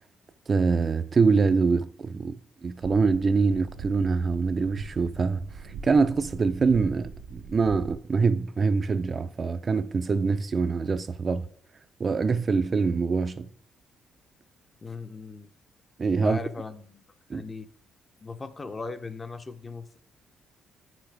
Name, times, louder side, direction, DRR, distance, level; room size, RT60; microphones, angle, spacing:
voice 1, 0.5-2.4 2.6-11.5 12.0-13.5 16.0-16.4 17.3-17.4, right 4 dB, 40° right, 0.4 m, -24 dB
sound 1, 2.8-7.9, right 5 dB, 90° right, 0.8 m, -42 dB
voice 2, 14.8-15.5 16.2-17.0 17.3-17.7 18.2-20.0, left 4 dB, 25° left, 0.6 m, -38 dB
8.3 x 5.9 x 3.4 m
cardioid pair, 90°, 0 cm